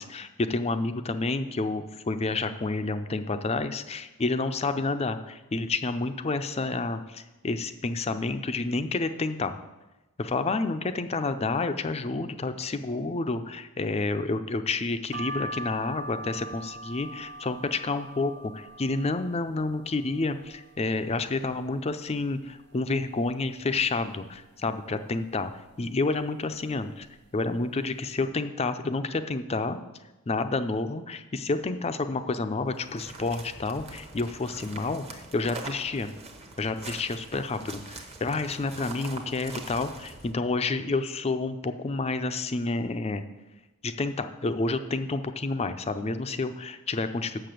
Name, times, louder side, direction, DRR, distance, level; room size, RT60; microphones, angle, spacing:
voice 1, 0.0-9.6 10.2-25.5 25.8-27.1 27.3-29.8 30.3-36.1 36.6-43.2 43.8-47.5, left 3 dB, 30° left, 9 dB, 0.5 m, -29 dB
sound 1, 15.1-20.8 21.3-22.0 22.4-22.5 22.7-23.8 24.3-24.7 25.4-25.8 26.5-26.8 27.1-27.3, right 1 dB, 50° right, 0.6 m, -42 dB
sound 2, 32.6-40.3, right 3 dB, 30° right, 1.0 m, -43 dB
6.8 x 6.5 x 7.7 m, 1.1 s
head